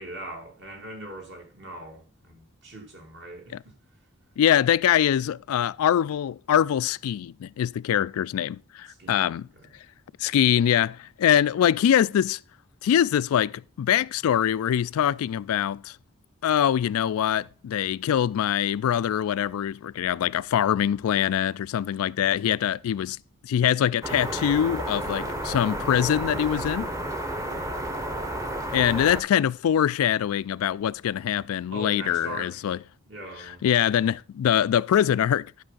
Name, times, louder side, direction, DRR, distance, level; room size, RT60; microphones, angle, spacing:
voice 1, 0.0-3.7 9.0-9.3 9.6-9.7 27.4-27.7 31.7-32.6 33.1-33.7, right 1 dB, 55° right, 2.6 m, -41 dB
voice 2, 4.4-9.5 10.2-12.4 12.8-16.0 16.4-23.2 23.4-26.9 28.7-32.8 33.5-35.5, left 10 dB, 85° left, 0.3 m, -23 dB
sound 1, 24.0-29.2, right 1 dB, 15° right, 0.9 m, -31 dB
11.5 x 5.4 x 3.8 m
head